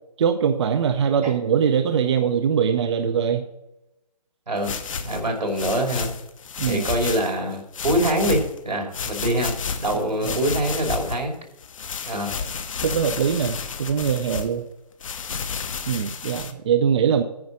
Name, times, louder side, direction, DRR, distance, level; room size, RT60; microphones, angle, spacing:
voice 1, 0.2-3.5 6.6-6.8 10.2-10.4 12.3-12.5 12.8-14.7 15.9-17.2, right 7 dB, 45° right, 8 dB, 0.6 m, -22 dB
sound 1, 4.6-7.3 7.7-8.6 8.9-11.2 11.6-14.5 15.0-16.5, left 6 dB, 55° left, 0.9 m, -31 dB
voice 2, 5.0-6.1 6.6-9.5 9.8-11.4 12.1-12.3, right 1 dB, 85° right, 2 dB, 2.8 m, -24 dB
9.5 x 5.0 x 7.1 m, 0.91 s
figure-of-eight pair, 150°, 21 cm